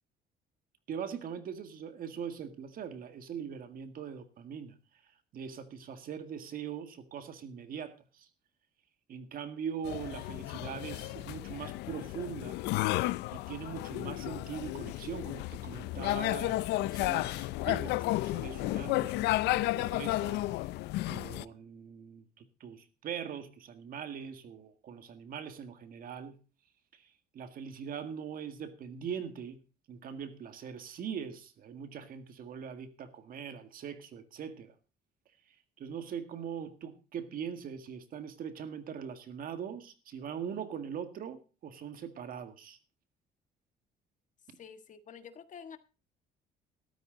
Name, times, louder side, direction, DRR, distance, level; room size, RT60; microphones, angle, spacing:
voice 1, 0.9-4.8 5.0-8.3 9.1-12.6 13.3-20.7 21.1-26.4 26.9-29.6 29.9-34.8 35.5-42.8, right 7 dB, 55° right, 1.9 m, -42 dB
sound 1, 9.8-21.4, left 17 dB, 85° left, 0.5 m, -33 dB
voice 2, 44.6-45.8, left 7 dB, 50° left, 1.5 m, -48 dB
13.5 x 12.5 x 3.9 m
cardioid pair, 110°, 17 cm